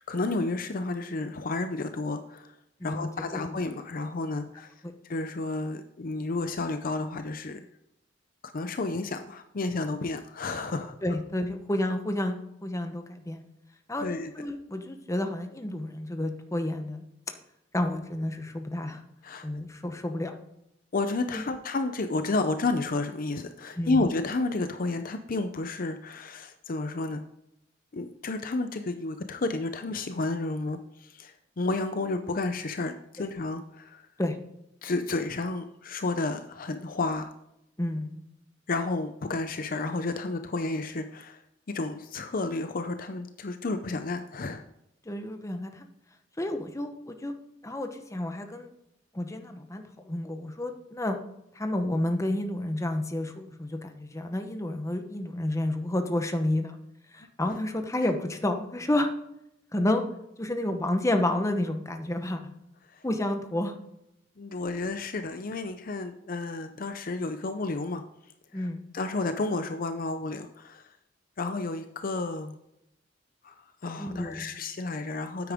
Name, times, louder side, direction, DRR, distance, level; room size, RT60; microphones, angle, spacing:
voice 1, 0.0-2.5 2.8-4.7 5.1-7.7 8.5-11.0 14.0-14.3 19.2-19.5 20.9-27.2 27.9-34.0 34.8-37.3 38.7-41.4 41.7-44.6 62.9-63.0 64.4-68.0 68.5-68.7 68.9-70.9 71.4-72.6 73.4-73.5 73.8-75.5, left 3 dB, 50° left, 8 dB, 0.6 m, -31 dB
voice 2, 2.8-3.6 4.8-4.9 11.0-13.4 13.9-17.0 17.7-19.0 19.4-20.4 21.3-21.4 23.8-24.0 33.2-33.3 34.2-34.4 37.8-38.2 45.1-45.9 46.4-47.3 47.6-48.7 49.1-51.2 51.5-56.8 57.1-59.1 59.7-60.0 60.4-62.5 63.0-63.7 68.5-68.9 74.0-74.5, left 1 dB, 15° left, 6 dB, 0.9 m, -30 dB
9.4 x 8.6 x 3.6 m, 0.81 s
head